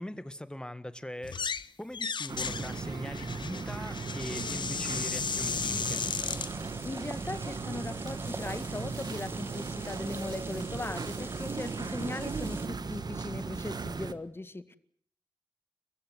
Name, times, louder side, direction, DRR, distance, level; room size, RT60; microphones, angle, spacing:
voice 1, 0.0-1.4 1.8-6.0, left 1 dB, 10° left, 13 dB, 1.8 m, -41 dB
sound 1, 1.2-1.7 1.9-6.5, left 6 dB, 60° left, 0.9 m, -35 dB
sound 2, 2.3-14.1, right 4 dB, 50° right, 1.5 m, -37 dB
sound 3, 5.5-12.7, right 2 dB, 25° right, 2.1 m, -45 dB
voice 2, 6.8-14.8, left 2 dB, 25° left, 13 dB, 1.9 m, -39 dB
30.0 x 15.5 x 8.1 m, 0.64 s
wide cardioid pair, 80°, 9 cm